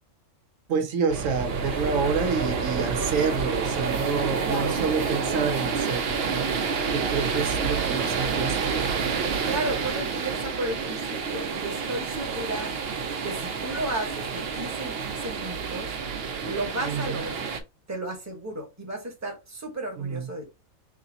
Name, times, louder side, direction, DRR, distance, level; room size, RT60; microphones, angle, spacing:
voice 1, 0.7-6.5 6.9-8.6 16.8-17.2 20.0-20.3, right 5 dB, 75° right, 1.1 m, -28 dB
sound 1, 1.1-17.6, right 5 dB, 55° right, 0.8 m, -29 dB
voice 2, 4.4-4.8 9.4-12.8 13.2-16.0 16.4-17.5 17.9-20.5, right 1 dB, 15° right, 1.1 m, -34 dB
3.2 x 2.8 x 3.8 m
omnidirectional pair, 1.4 m